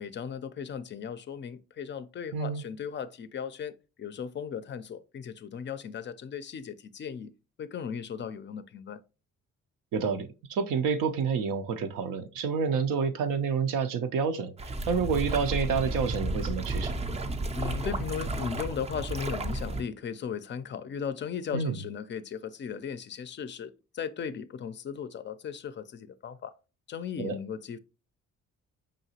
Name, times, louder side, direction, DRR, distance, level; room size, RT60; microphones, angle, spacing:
voice 1, 0.0-7.3 7.6-9.0 17.5-26.5 26.9-27.8, left 7 dB, 40° left, 0.4 m, -37 dB
voice 2, 2.3-2.6 9.9-17.0 21.5-21.8 27.2-27.4, right 5 dB, 90° right, 0.7 m, -29 dB
sound 1, 14.6-19.8, right 2 dB, 20° right, 0.4 m, -32 dB
5.2 x 2.8 x 2.8 m
cardioid pair, 90°, 30 cm